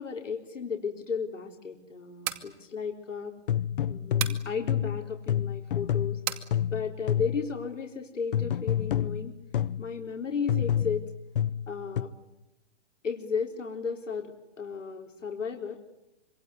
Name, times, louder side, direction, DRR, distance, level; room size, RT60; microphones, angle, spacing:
voice 1, 0.0-3.4 3.9-6.2 6.7-9.4 9.8-11.1 11.7-12.1 13.0-15.8, left 5 dB, 90° left, 2 dB, 4.1 m, -34 dB
sound 1, 2.0-2.5 4.2-4.5 6.3-6.5, right 13 dB, 30° right, 2.4 m, -32 dB
sound 2, 3.5-7.5 8.3-9.9 10.5-12.0, left 10 dB, 45° left, 0.9 m, -28 dB
26.0 x 23.5 x 9.7 m, 0.88 s
hypercardioid pair, 150°, 36 cm